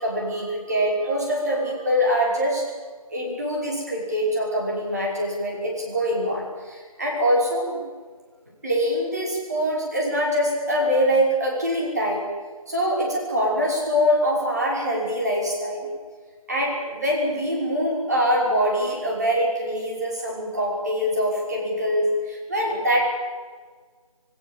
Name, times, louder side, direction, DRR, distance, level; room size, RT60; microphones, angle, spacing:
voice 1, 0.0-2.6 3.1-7.8 8.6-12.3 12.7-15.9 16.5-23.1, equal, 25° right, -3 dB, 5.8 m, -24 dB
27.5 x 17.5 x 7.4 m, 1.5 s
figure-of-eight pair, 175°, 19 cm